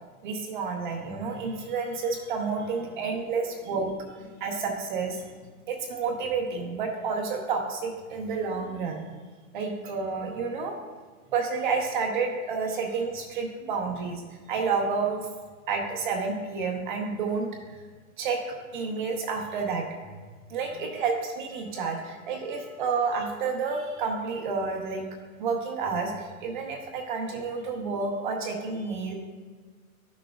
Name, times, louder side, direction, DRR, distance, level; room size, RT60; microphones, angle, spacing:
voice 1, 0.2-3.9 4.4-5.2 5.7-9.1 9.5-10.8 11.3-14.2 14.5-15.3 15.7-17.8 18.2-19.8 20.5-25.0 25.4-29.1, right 4 dB, 35° right, 2 dB, 0.8 m, -30 dB
voice 2, 1.1-4.5 14.4-14.5 20.6-20.8 21.6-23.0 28.7-29.1, equal, 5° left, -8 dB, 0.8 m, -55 dB
12.5 x 6.3 x 2.3 m, 1.5 s
hypercardioid pair, 160°, 44 cm